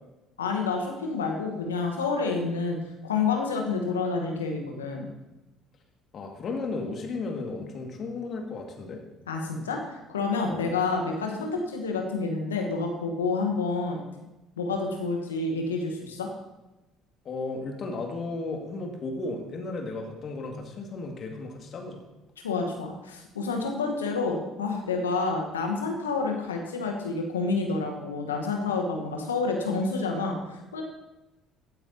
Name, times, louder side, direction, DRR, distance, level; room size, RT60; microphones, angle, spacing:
voice 1, 0.4-2.8 3.0-5.1 9.3-14.0 14.6-16.3 22.4-30.8, left 4 dB, 85° left, 2 dB, 1.2 m, -29 dB
voice 2, 6.1-9.0 10.5-10.7 17.2-22.0, left 3 dB, 45° left, 2 dB, 2.0 m, -34 dB
15.5 x 8.8 x 2.8 m, 1.0 s
hypercardioid pair, 55°, 0 cm